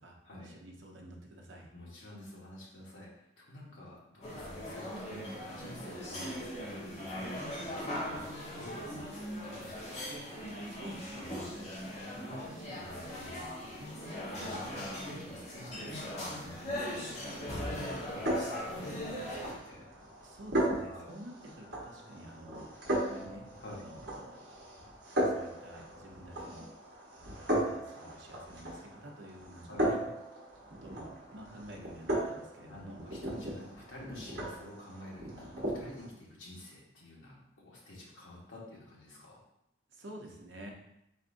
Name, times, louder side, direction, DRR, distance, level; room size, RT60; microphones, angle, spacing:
voice 1, 0.0-1.7 10.6-11.5 12.1-14.5 17.8-18.2 20.2-22.6 23.1-24.4 25.2-26.6 27.6-30.0 30.8-33.0 39.9-40.7, right 1 dB, 75° right, 0 dB, 0.8 m, -49 dB
voice 2, 1.7-10.1 11.4-11.7 14.4-19.9 20.8-21.1 23.6-23.8 29.7-29.9 32.7-39.4, left 1 dB, 80° left, -4 dB, 1.2 m, -50 dB
sound 1, 4.2-19.5, equal, 35° left, 1.2 m, -40 dB
sound 2, 17.9-36.1, right 1 dB, 60° right, 1.1 m, -37 dB
4.2 x 4.1 x 2.6 m, 0.80 s
head